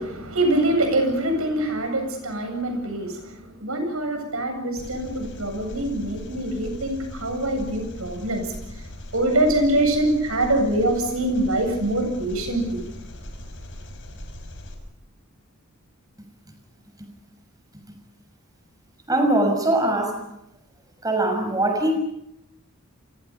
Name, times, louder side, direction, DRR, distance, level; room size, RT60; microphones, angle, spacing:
voice 1, 0.0-8.5 9.1-12.9, right 1 dB, 75° right, 5 dB, 7.9 m, -24 dB
Engine, 4.8-14.7, left 1 dB, 60° left, 5.9 m, -39 dB
voice 2, 19.1-20.3 21.0-22.0, right 1 dB, 15° right, 5 dB, 6.1 m, -21 dB
29.5 x 25.5 x 5.6 m, 0.79 s
head